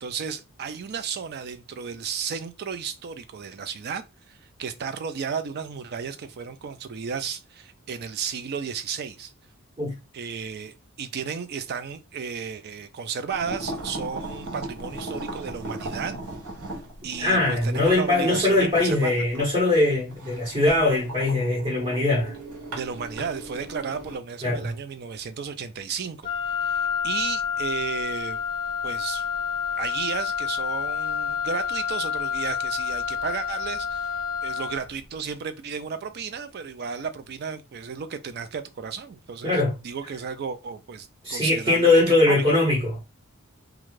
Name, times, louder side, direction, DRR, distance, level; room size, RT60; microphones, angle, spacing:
voice 1, 0.0-9.3 10.1-16.1 17.0-19.2 20.7-20.9 22.8-28.4 28.8-29.3 29.8-39.6 39.8-41.9 42.3-42.4, right 6 dB, 50° right, 0.4 m, -33 dB
sound 1, 13.3-24.2, right 1 dB, 75° right, 1.0 m, -38 dB
voice 2, 17.2-22.3 24.4-24.7 39.4-39.7 41.2-43.0, left 2 dB, 30° right, 1.0 m, -21 dB
Wind instrument woodwind instrument, 26.2-34.9, left 7 dB, 25° left, 0.4 m, -29 dB
2.5 x 2.3 x 3.1 m
head